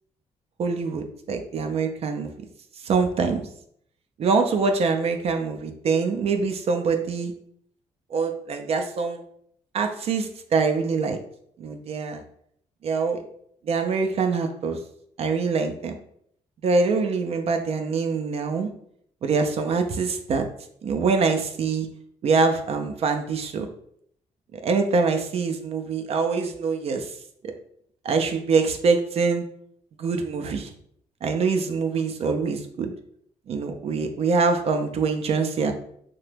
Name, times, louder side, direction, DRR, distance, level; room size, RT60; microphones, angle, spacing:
voice 1, 0.6-2.3 2.8-3.4 4.2-7.3 8.1-9.2 9.7-11.2 11.6-12.2 12.8-13.2 13.6-14.8 15.2-16.0 16.6-18.7 19.2-20.4 20.8-21.9 22.2-23.7 24.5-27.1 28.0-29.4 30.0-30.7 31.2-32.9 33.5-35.7, right 4 dB, 55° right, 6 dB, 0.4 m, -24 dB
2.9 x 2.1 x 3.2 m, 0.66 s
cardioid pair, 100°, 13 cm